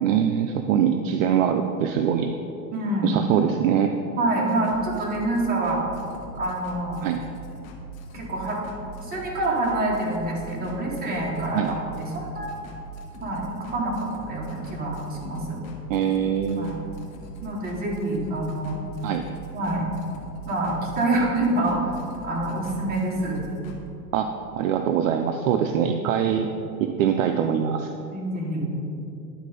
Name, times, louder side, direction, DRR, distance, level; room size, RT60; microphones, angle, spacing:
voice 1, 0.0-2.3 3.0-3.9 7.0-7.2 11.5-11.7 15.9-16.8 19.0-19.2 24.1-24.3 24.6-26.5 26.8-27.9, right 9 dB, 55° right, 6 dB, 0.5 m, -23 dB
voice 2, 2.7-3.2 4.2-5.8 6.4-7.0 8.1-8.6 9.0-11.6 11.9-12.5 13.2-15.6 16.6-16.8 17.4-18.8 19.5-20.0 20.5-21.9 22.2-23.5 28.1-28.7, right 2 dB, 20° right, -3 dB, 1.4 m, -26 dB
sound 1, 4.5-23.8, right 2 dB, 55° left, 1.3 m, -41 dB
10.5 x 4.1 x 5.1 m, 2.7 s
supercardioid pair, 145°, 48 cm